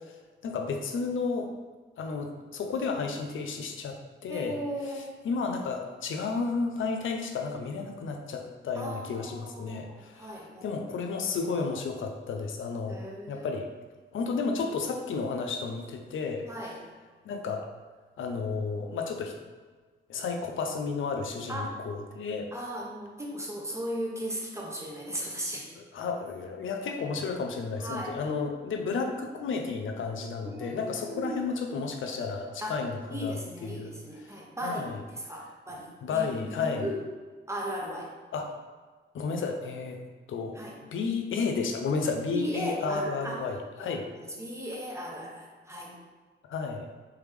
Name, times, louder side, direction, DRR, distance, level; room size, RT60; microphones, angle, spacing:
voice 1, 0.4-1.5 2.0-13.0 13.3-13.7 14.1-16.7 17.2-17.7 18.2-19.3 20.1-22.5 25.7-35.0 35.7-36.9 38.3-38.6 39.1-40.0 40.3-40.6 40.9-44.1 46.5-46.9, left 4 dB, 75° left, 4 dB, 0.5 m, -32 dB
voice 2, 4.3-5.1 8.8-10.7 12.9-13.5 16.5-16.8 21.5-21.7 22.5-25.7 27.8-28.1 30.4-31.4 32.6-32.8 33.1-37.0 37.5-38.1 40.5-40.8 42.3-43.4 43.8-46.0, equal, 15° right, -2 dB, 1.0 m, -37 dB
3.5 x 3.0 x 3.3 m, 1.4 s
cardioid pair, 50°, 20 cm